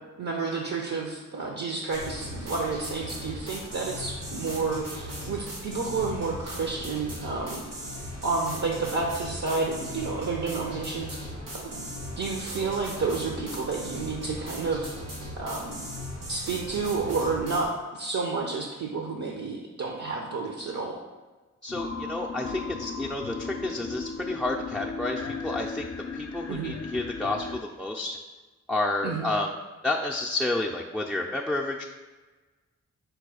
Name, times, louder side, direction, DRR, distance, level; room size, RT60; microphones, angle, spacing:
voice 1, 0.2-7.6 8.2-11.1 11.5-11.8 12.2-14.9 15.4-15.8 16.3-21.0 26.5-26.7 29.0-29.3, right 4 dB, 65° right, -1 dB, 0.7 m, -30 dB
sound 1, 1.9-17.7, equal, 85° right, 1.2 m, -38 dB
voice 2, 21.6-25.8 26.1-28.2 28.7-29.5 29.8-31.9, left 2 dB, ahead, -3 dB, 0.4 m, -30 dB
sound 2, 21.7-27.6, left 4 dB, 50° left, 0.5 m, -36 dB
4.6 x 2.2 x 4.8 m, 1.2 s
cardioid pair, 45°, 31 cm